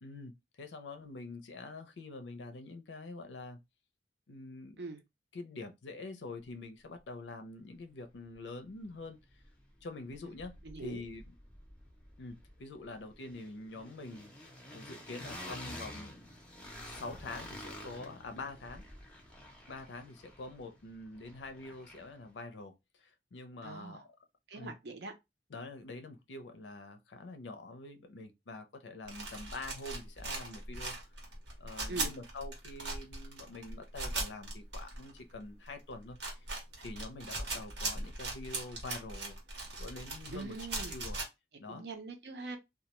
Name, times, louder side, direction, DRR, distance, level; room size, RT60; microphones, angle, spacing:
voice 1, 0.0-3.6 4.3-4.8 5.3-9.2 9.8-11.3 12.2-16.3 16.9-18.8 19.7-24.2 24.5-24.8 25.5-31.0 31.6-36.5 36.8-39.4 39.8-40.6 40.9-41.2 41.6-41.8, left 2 dB, 85° left, 0.5 m, -46 dB
sound 1, 8.3-8.4 8.7-9.8 10.1-22.3, left 1 dB, 5° left, 0.5 m, -50 dB
voice 2, 10.6-11.0 23.6-24.0 24.5-25.1 31.9-32.1 40.3-41.0 41.7-42.6, right 3 dB, 65° right, 0.6 m, -43 dB
sound 2, 29.0-35.3 35.7-35.8 36.1-41.2, right 2 dB, 90° right, 1.0 m, -39 dB
2.2 x 2.1 x 2.9 m
head